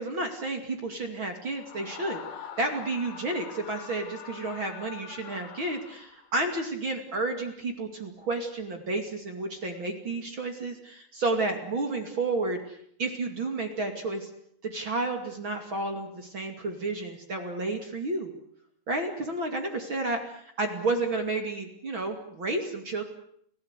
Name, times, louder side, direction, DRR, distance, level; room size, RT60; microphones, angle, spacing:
voice 1, 0.0-14.3 14.6-18.3 18.9-20.3 20.6-23.0, right 2 dB, 35° right, 5 dB, 2.4 m, -31 dB
Screaming, 1.5-6.4, left 8 dB, 75° left, 6.0 m, -44 dB
30.0 x 17.5 x 8.3 m, 0.69 s
omnidirectional pair, 5.2 m